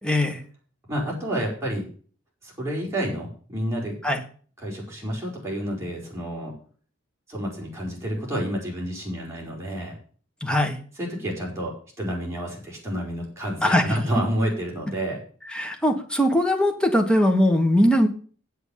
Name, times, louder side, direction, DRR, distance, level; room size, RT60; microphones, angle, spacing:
voice 1, 0.0-0.4 4.0-4.2 10.4-10.8 13.6-14.0 15.5-18.1, left 1 dB, 5° left, 3 dB, 1.5 m, -20 dB
voice 2, 0.9-1.9 2.4-4.0 4.6-6.5 7.3-10.0 11.0-15.2, equal, 15° right, -3 dB, 5.3 m, -29 dB
8.2 x 7.9 x 8.5 m, 0.43 s
head